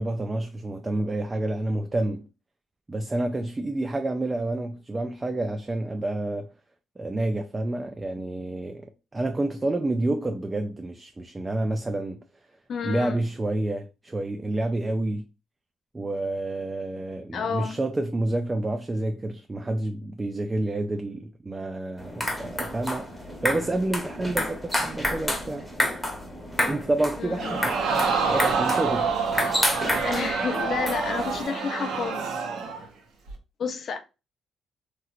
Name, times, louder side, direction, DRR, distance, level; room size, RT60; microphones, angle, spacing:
voice 1, 0.0-2.2 2.9-6.5 7.0-8.9 9.1-12.2 12.8-15.2 15.9-25.7 26.6-27.8 28.3-29.1, right 2 dB, 20° right, 0.4 m, -29 dB
voice 2, 12.7-13.2 17.3-17.8 27.2-27.6 30.0-32.3 33.6-34.0, left 6 dB, 60° left, 0.6 m, -30 dB
sound 1, 22.0-31.4, left 1 dB, 5° left, 0.9 m, -30 dB
Crowd, 27.4-32.9 33.3-33.4, right 5 dB, 85° right, 0.8 m, -27 dB
3.0 x 2.8 x 2.4 m
cardioid pair, 90°, 0 cm